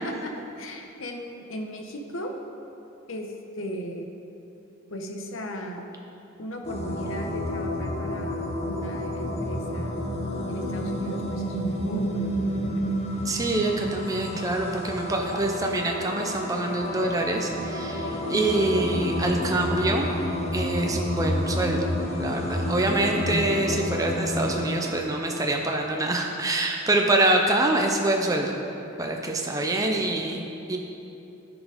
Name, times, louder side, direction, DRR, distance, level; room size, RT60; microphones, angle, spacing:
voice 1, 0.0-2.3 3.1-4.1 4.9-5.9 6.4-10.0 10.5-12.8 18.3-18.7 29.9-30.1, equal, 65° left, 3 dB, 1.0 m, -36 dB
sound 1, 6.6-24.9, left 1 dB, 30° left, 0.9 m, -30 dB
voice 2, 13.2-20.1 20.5-21.8 22.2-28.6 29.0-30.8, right 2 dB, 15° right, 1 dB, 0.5 m, -25 dB
13.5 x 5.1 x 5.0 m, 2.9 s
head